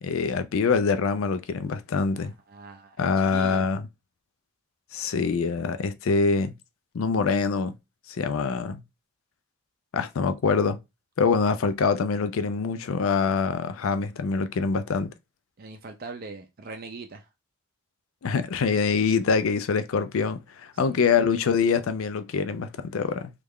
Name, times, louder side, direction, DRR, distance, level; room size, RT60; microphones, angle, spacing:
voice 1, 0.0-2.3 3.0-3.8 4.9-6.5 6.9-7.7 8.1-8.8 9.9-10.8 11.2-15.1 18.2-23.3, left 5 dB, 75° left, 0.4 m, -25 dB
voice 2, 2.1-3.7 15.6-17.3 20.9-21.0, right 3 dB, 45° right, 0.4 m, -41 dB
3.2 x 2.4 x 3.5 m
head